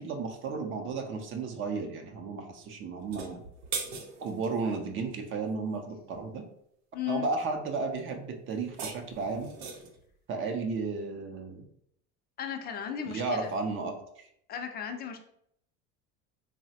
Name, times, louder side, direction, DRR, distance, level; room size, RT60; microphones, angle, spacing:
voice 1, 0.0-3.4 4.2-6.4 7.1-9.5 10.3-11.6 13.0-14.3, right 4 dB, 40° right, 4 dB, 0.5 m, -33 dB
sound 1, 3.0-4.5 8.5-10.0, right 5 dB, 85° right, 0.7 m, -39 dB
voice 2, 6.9-7.3 12.4-13.5 14.5-15.2, left 9 dB, 30° left, 5 dB, 0.4 m, -35 dB
3.1 x 2.0 x 2.7 m, 0.71 s
supercardioid pair, 110°, 32 cm